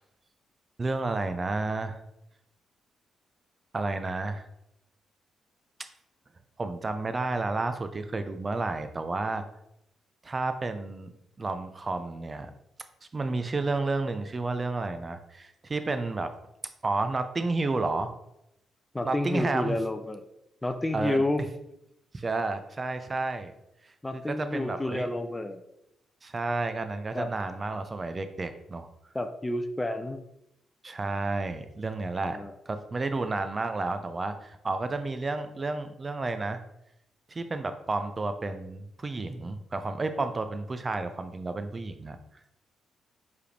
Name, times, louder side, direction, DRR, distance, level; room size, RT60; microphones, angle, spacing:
voice 1, 0.8-2.0 3.7-4.4 6.6-9.4 10.2-11.1 11.4-12.5 13.1-16.3 16.8-18.1 19.0-19.8 20.9-21.2 22.1-23.5 23.8-25.1 26.2-28.9 30.8-32.4 32.7-36.6 37.3-42.2, right 3 dB, 35° right, 9 dB, 0.5 m, -31 dB
voice 2, 18.9-20.2 20.6-21.4 24.0-25.6 27.1-27.3 29.1-30.2 32.2-32.5, left 1 dB, 15° left, 7 dB, 0.5 m, -30 dB
4.6 x 3.4 x 3.1 m, 0.82 s
supercardioid pair, 50°, 0 cm